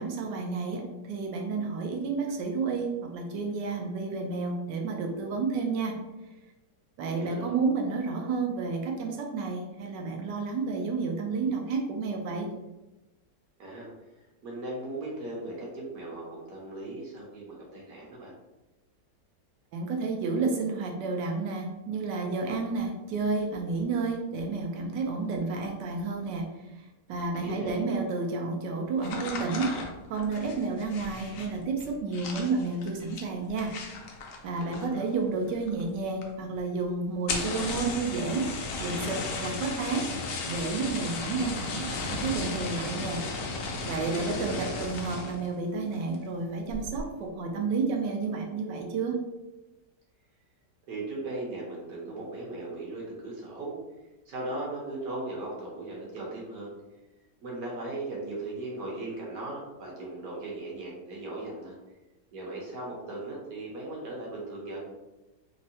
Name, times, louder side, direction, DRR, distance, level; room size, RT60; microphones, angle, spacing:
voice 1, 0.0-5.9 7.0-12.5 19.7-26.5 26.8-29.7 30.1-33.7 34.4-38.5 38.8-43.2 43.8-49.2, right 4 dB, 90° right, 2 dB, 1.2 m, -31 dB
voice 2, 7.0-7.5 13.6-18.3 27.4-27.8 34.6-35.1 44.1-44.7 50.9-53.7 54.3-56.7 57.4-61.8 62.3-64.8, right 2 dB, 65° right, -3 dB, 1.1 m, -38 dB
sound 1, 29.0-35.1 35.4-35.9 36.2-36.3 36.6-36.7 37.1-45.5 45.9-46.3 46.7-47.1, left 3 dB, 70° left, 0.8 m, -35 dB
3.5 x 2.0 x 2.7 m, 1.0 s
omnidirectional pair, 1.8 m